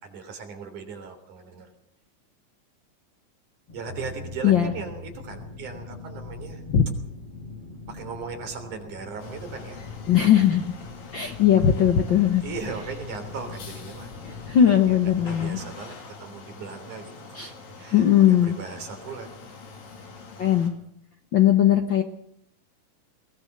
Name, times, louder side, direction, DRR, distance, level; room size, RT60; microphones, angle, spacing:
voice 1, 0.0-1.7 3.7-6.6 7.9-9.8 11.1-11.4 12.4-14.1 14.9-17.1 17.4-18.1 18.4-19.3, right 5 dB, 65° right, 6 dB, 4.8 m, -38 dB
sound 1, 3.7-15.7, left 3 dB, 45° left, 4.2 m, -42 dB
sound 2, 9.2-20.7, left 4 dB, 90° left, 4.8 m, -44 dB
voice 2, 10.1-10.6 11.1-12.4 14.2-15.6 17.3-17.5 17.9-18.6 20.4-20.7 21.3-22.0, left 10 dB, 70° left, 7 dB, 1.1 m, -19 dB
21.0 x 20.0 x 6.7 m, 0.71 s
omnidirectional pair, 3.9 m